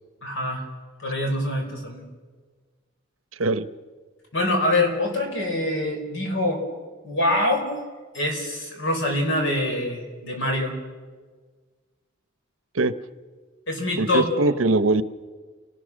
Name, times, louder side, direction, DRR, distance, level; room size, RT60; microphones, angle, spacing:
voice 1, 0.2-0.7 1.0-2.1 4.3-6.6 7.0-7.7 8.1-10.7 13.7-14.2, left 1 dB, 65° left, 3 dB, 4.8 m, -24 dB
voice 2, 14.0-15.0, right 2 dB, 75° right, 13 dB, 0.9 m, -21 dB
28.5 x 18.5 x 6.4 m, 1.5 s
head